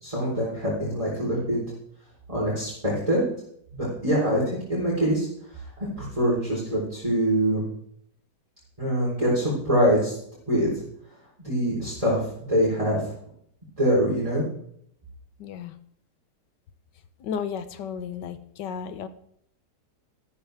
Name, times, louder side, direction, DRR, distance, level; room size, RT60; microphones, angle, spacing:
voice 1, 0.0-1.6 2.3-3.2 3.7-5.3 6.0-7.6 8.8-10.1 10.5-10.7 11.4-13.0 13.8-14.4, equal, 20° right, -7 dB, 4.1 m, -24 dB
voice 2, 15.4-15.7 17.2-19.1, left 7 dB, 75° left, 11 dB, 1.6 m, -33 dB
13.5 x 13.0 x 3.5 m, 0.70 s
omnidirectional pair, 1.9 m